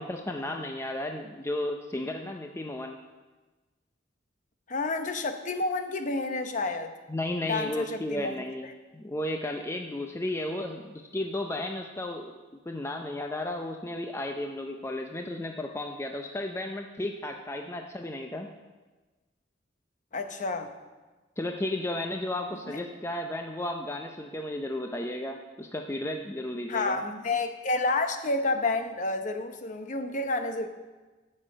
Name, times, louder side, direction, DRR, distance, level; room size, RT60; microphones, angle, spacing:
voice 1, 0.0-3.0 7.1-18.5 21.4-27.0, left 1 dB, 15° left, 3 dB, 0.5 m, -34 dB
voice 2, 4.7-6.9 7.5-8.4 20.1-20.7 26.7-30.7, left 3 dB, 40° left, 7 dB, 0.8 m, -29 dB
9.2 x 6.4 x 7.5 m, 1.2 s
head